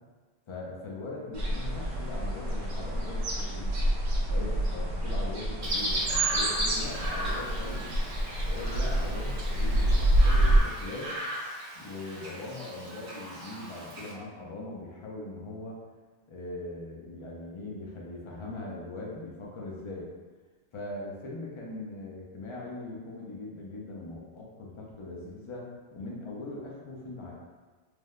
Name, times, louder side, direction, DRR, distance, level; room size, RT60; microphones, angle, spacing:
voice 1, 0.5-3.7 4.3-7.9 8.5-11.1 11.7-15.8 16.3-20.1 20.7-27.3, left 2 dB, 55° left, -3 dB, 0.3 m, -40 dB
sound 1, 1.3-10.6, right 1 dB, 85° right, 0.9 m, -27 dB
Chirp tweet, 5.6-14.1, right 2 dB, 45° right, 0.6 m, -34 dB
3.2 x 2.1 x 2.3 m, 1.3 s
omnidirectional pair, 1.1 m